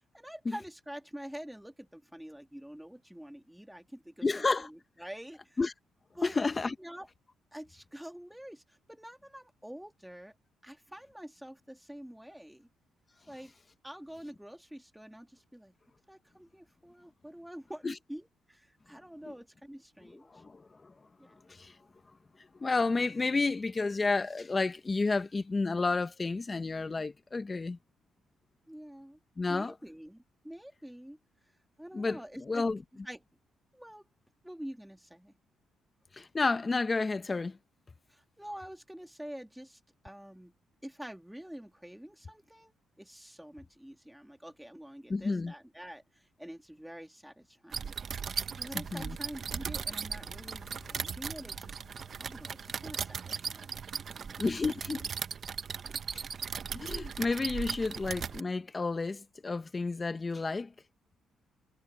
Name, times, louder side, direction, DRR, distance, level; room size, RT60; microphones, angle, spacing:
voice 1, 0.1-5.6 6.2-6.4 6.8-7.1 7.5-10.4 10.6-12.7 13.3-13.5 13.8-15.7 16.1-20.4 21.2-21.4 28.7-29.2 29.5-31.2 31.8-32.7 33.0-33.2 33.7-34.1 34.4-35.3 38.1-40.5 40.8-47.9 48.5-54.7 55.7-56.0, equal, 5° right, 2.7 m, -47 dB
voice 2, 4.2-4.7 5.6-5.7 6.2-6.7 17.8-17.9 19.3-19.4 20.3-20.9 21.5-21.7 22.6-27.8 29.4-29.7 31.9-32.2 32.5-32.8 36.1-37.6 45.1-45.5 48.9-49.2 54.4-55.1 56.1-56.2 56.7-60.7, left 3 dB, 25° left, 1.2 m, -31 dB
sound 1, 47.7-58.4, right 6 dB, 50° right, 1.2 m, -38 dB
sound 2, 49.9-54.6, left 11 dB, 75° left, 4.8 m, -59 dB
cardioid pair, 90°, 0 cm